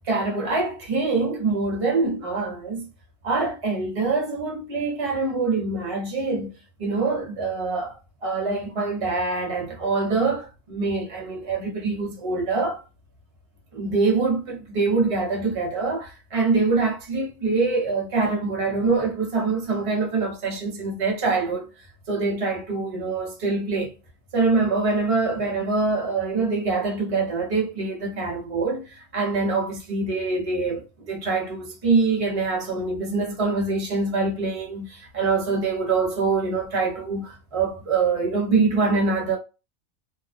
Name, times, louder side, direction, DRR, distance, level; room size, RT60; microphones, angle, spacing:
voice 1, 0.0-2.9 3.2-6.5 6.8-12.8 13.7-21.7 22.1-23.9 24.3-39.4, right 4 dB, 35° right, 0.7 m, -24 dB
2.4 x 2.1 x 2.4 m
omnidirectional pair, 1.3 m